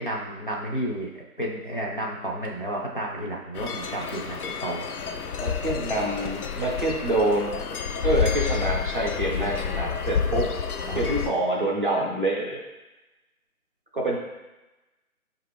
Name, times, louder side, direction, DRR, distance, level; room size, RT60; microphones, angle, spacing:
voice 1, 0.0-4.9 10.9-11.0, right 1 dB, 40° left, -3 dB, 0.4 m, -32 dB
sound 1, 3.6-11.3, left 6 dB, 85° left, 0.6 m, -29 dB
voice 2, 5.4-7.5 8.0-10.5 10.9-12.6 13.9-14.2, right 1 dB, 40° right, -2 dB, 0.5 m, -26 dB
5.0 x 2.5 x 3.2 m, 1.1 s
figure-of-eight pair, 160°, 43 cm